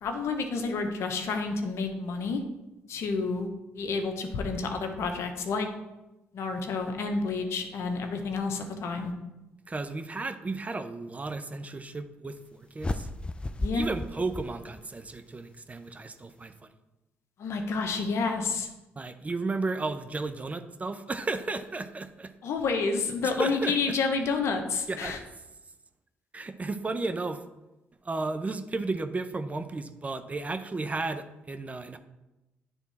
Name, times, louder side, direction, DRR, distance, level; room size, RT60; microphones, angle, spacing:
voice 1, 0.0-2.4 2.9-5.7 6.3-9.1 13.6-13.9 17.4-18.7 22.4-25.2, left 4 dB, 65° left, 5 dB, 1.0 m, -29 dB
voice 2, 9.7-13.1 13.7-16.7 19.0-22.3 23.2-23.9 24.9-25.2 26.3-27.4 28.0-32.0, right 3 dB, 30° right, 9 dB, 0.7 m, -33 dB
sound 1, 12.8-15.2, left 2 dB, 20° left, 0.5 m, -34 dB
9.5 x 3.6 x 4.1 m, 0.99 s
supercardioid pair, 55°, 5 cm